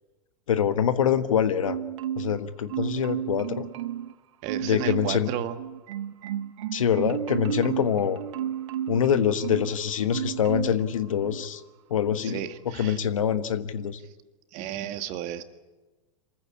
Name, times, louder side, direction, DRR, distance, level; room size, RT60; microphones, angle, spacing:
voice 1, 0.5-1.8 2.2-3.7 4.6-5.3 6.7-8.2 8.9-11.6 11.9-12.4 12.7-14.0, left 8 dB, 75° left, 11 dB, 1.4 m, -25 dB
Marimba xylophone, 1.6-2.4 2.7-4.1 4.5-5.2 5.6-9.7 10.1-10.8 11.2-11.4, right 10 dB, 65° right, 0.9 m, -32 dB
voice 2, 4.4-5.6 12.2-13.0 14.5-15.4, right 11 dB, 45° right, 9 dB, 1.7 m, -33 dB
27.0 x 15.0 x 8.7 m, 1.2 s
figure-of-eight pair, 95°, 17 cm